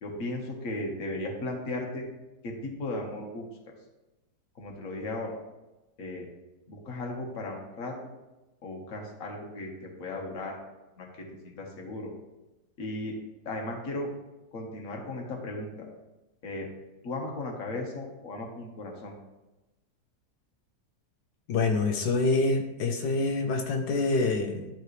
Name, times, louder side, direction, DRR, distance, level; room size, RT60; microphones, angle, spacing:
voice 1, 0.0-2.1 2.4-3.4 4.6-5.4 6.0-6.3 6.7-8.0 8.6-10.6 11.0-12.1 12.8-13.1 13.4-14.1 14.5-15.9 16.4-16.7 17.0-19.1, left 2 dB, 50° left, 0 dB, 1.6 m, -36 dB
voice 2, 21.5-24.7, left 3 dB, 85° left, 3 dB, 1.4 m, -26 dB
12.0 x 4.0 x 3.2 m, 1.0 s
omnidirectional pair, 1.9 m